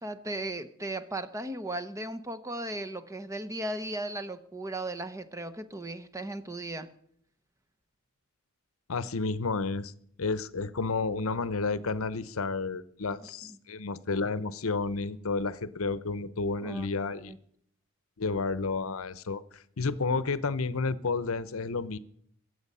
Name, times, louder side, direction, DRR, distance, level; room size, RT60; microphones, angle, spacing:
voice 1, 0.0-6.9 16.6-17.4, right 1 dB, 15° right, 11 dB, 0.8 m, -36 dB
voice 2, 8.9-9.9 10.2-17.3 18.2-22.0, left 4 dB, 70° left, 16 dB, 0.8 m, -31 dB
23.0 x 8.0 x 5.5 m, 0.67 s
head